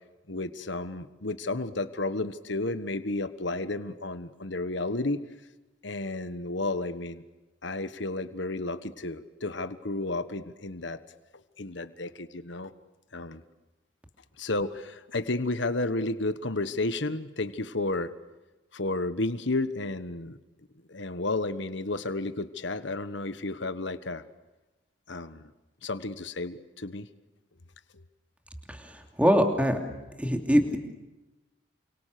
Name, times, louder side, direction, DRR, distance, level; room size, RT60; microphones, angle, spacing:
voice 1, 0.3-5.2 5.8-7.2 7.6-11.0 11.6-12.7 13.1-13.4 14.4-18.1 18.7-20.4 20.9-24.2 25.1-25.5 25.8-27.1, left 2 dB, 65° left, 12 dB, 1.4 m, -32 dB
voice 2, 29.2-29.8 30.2-30.8, equal, 5° right, 4 dB, 2.8 m, -22 dB
29.0 x 26.0 x 6.8 m, 1.1 s
head